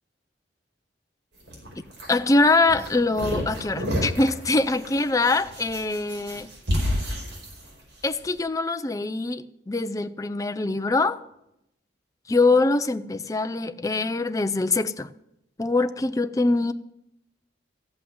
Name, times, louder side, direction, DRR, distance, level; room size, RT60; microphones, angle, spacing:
sound 1, 1.4-8.2, equal, 70° right, 4.9 m, -31 dB
voice 1, 2.1-6.5 8.0-11.2 12.3-15.1 15.6-16.7, left 3 dB, 20° left, 0.4 m, -23 dB
15.0 x 5.7 x 9.4 m
head